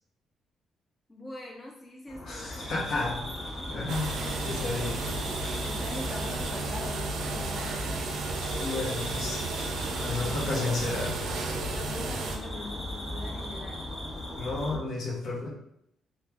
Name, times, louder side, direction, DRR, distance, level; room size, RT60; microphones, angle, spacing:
voice 1, 1.1-3.1 3.8-4.4 5.6-7.9 10.2-10.8 11.3-11.4 11.7-13.9, left 2 dB, 20° left, 0 dB, 0.4 m, -43 dB
sound 1, 2.1-14.8, left 1 dB, 35° left, 1.0 m, -38 dB
voice 2, 2.2-3.2 3.7-4.2 4.4-5.1 8.6-9.4 10.0-11.2 14.3-15.5, left 3 dB, 65° left, -3 dB, 0.8 m, -32 dB
sound 2, 3.0-11.9, equal, 5° right, 0.8 m, -49 dB
sound 3, 3.9-12.4, right 3 dB, 80° right, 0.4 m, -33 dB
3.1 x 2.2 x 2.3 m, 0.76 s
cardioid pair, 90°, 0 cm